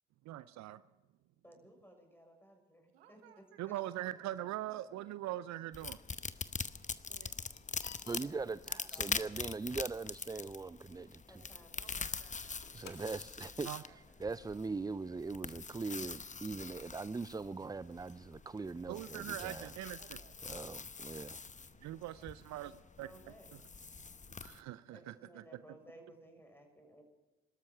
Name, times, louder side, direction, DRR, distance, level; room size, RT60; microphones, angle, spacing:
voice 1, 0.3-0.8 3.6-6.0 7.1-7.3 13.6-13.8 18.9-20.0 21.8-22.7 23.0-23.1 24.4-25.6, right 14 dB, 65° right, 16 dB, 0.6 m, -42 dB
voice 2, 1.4-3.2 3.7-3.8 7.4-7.5 8.0-9.3 9.7-10.0 11.3-12.0 17.8-17.9 23.0-23.6 24.9-27.0, equal, 5° left, 3 dB, 6.5 m, -59 dB
voice 3, 2.9-5.7 6.4-6.5 11.8-12.9 13.7-14.4 20.0-20.7, right 9 dB, 90° right, 8 dB, 1.0 m, -64 dB
sound 1, 5.7-24.6, left 5 dB, 25° left, 0.9 m, -44 dB
sound 2, 7.5-13.4, left 8 dB, 60° left, 1.8 m, -60 dB
voice 4, 8.1-11.4 12.7-19.7 20.5-21.4, right 4 dB, 15° right, 16 dB, 0.4 m, -41 dB
24.0 x 13.0 x 4.6 m, 1.1 s
hypercardioid pair, 40°, 30 cm